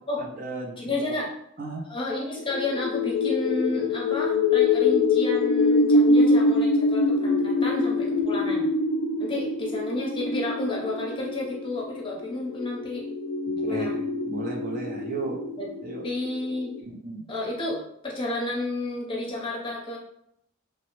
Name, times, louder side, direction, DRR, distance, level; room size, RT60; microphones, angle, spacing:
voice 1, 0.2-1.1 1.6-1.8 13.5-15.4 15.8-16.0 16.9-17.3, right 2 dB, 40° right, 0 dB, 0.5 m, -35 dB
voice 2, 0.8-1.3 1.9-8.6 9.2-13.0 13.6-13.9 15.6-15.7 16.0-16.7 17.3-20.0, left 2 dB, 25° left, -2 dB, 0.7 m, -31 dB
sound 1, 2.5-16.8, left 2 dB, 80° left, 0.3 m, -24 dB
3.0 x 2.0 x 3.0 m, 0.74 s
head